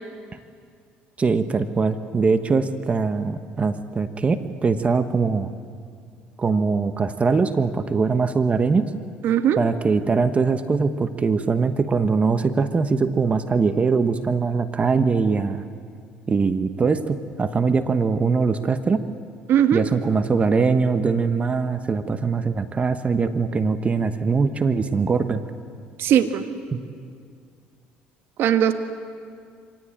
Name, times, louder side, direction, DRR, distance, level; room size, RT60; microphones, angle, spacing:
voice 1, 1.2-5.5 6.4-8.9 9.6-15.6 16.3-19.0 19.7-25.4 26.7-26.8, right 4 dB, 30° right, 10 dB, 1.3 m, -22 dB
voice 2, 9.2-9.6 19.5-19.8 26.0-26.4 28.4-28.8, right 10 dB, 60° right, 8 dB, 1.6 m, -19 dB
25.0 x 18.0 x 8.9 m, 2.2 s
supercardioid pair, 75°, 4 cm